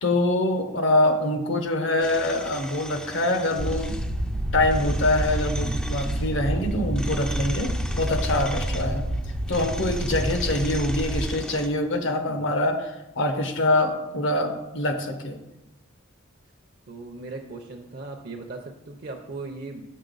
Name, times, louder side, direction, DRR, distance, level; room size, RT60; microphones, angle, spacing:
voice 1, 0.0-4.0 4.5-9.0 9.5-15.4, left 1 dB, 65° left, 6 dB, 0.8 m, -24 dB
sound 1, 2.0-11.7, equal, 5° left, 0.3 m, -40 dB
sound 2, 3.6-11.3, right 1 dB, 85° right, 0.9 m, -28 dB
voice 2, 12.2-12.5 16.9-19.8, right 3 dB, 50° right, 3 dB, 0.5 m, -38 dB
6.5 x 6.4 x 3.9 m, 0.96 s
head